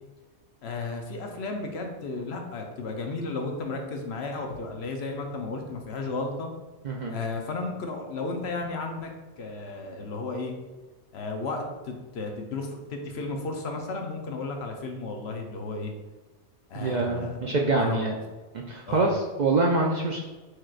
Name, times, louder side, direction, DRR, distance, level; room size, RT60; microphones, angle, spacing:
voice 1, 0.6-6.5 7.1-10.5 11.1-15.9 16.7-17.4 17.7-18.1 18.9-19.1, left 3 dB, 70° left, 3 dB, 0.9 m, -34 dB
voice 2, 16.7-18.1 18.5-20.3, right 3 dB, 55° right, -1 dB, 0.5 m, -25 dB
4.6 x 4.4 x 2.4 m, 1.2 s
omnidirectional pair, 1.2 m